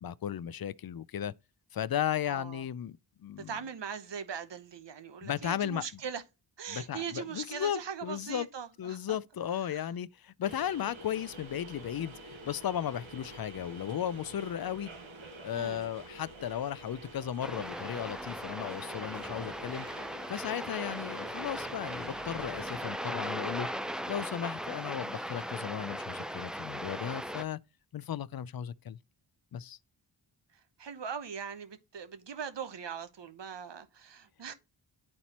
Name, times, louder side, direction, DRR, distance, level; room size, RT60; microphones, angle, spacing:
voice 1, 0.0-1.3 1.7-3.5 5.2-5.9 6.7-8.5 8.8-14.9 15.4-19.9 20.3-23.7 24.1-27.6 27.9-29.0 29.5-29.8, left 10 dB, 50° left, 0.5 m, -35 dB
voice 2, 2.3-2.6 3.4-6.2 6.6-9.2 9.6-9.9 15.5-15.9 30.5-34.5, right 7 dB, 60° right, 0.9 m, -41 dB
sound 1, 10.4-22.9, right 2 dB, 80° right, 1.4 m, -48 dB
sound 2, 17.4-27.4, equal, ahead, 0.4 m, -38 dB
11.0 x 4.2 x 2.9 m
cardioid pair, 45°, 47 cm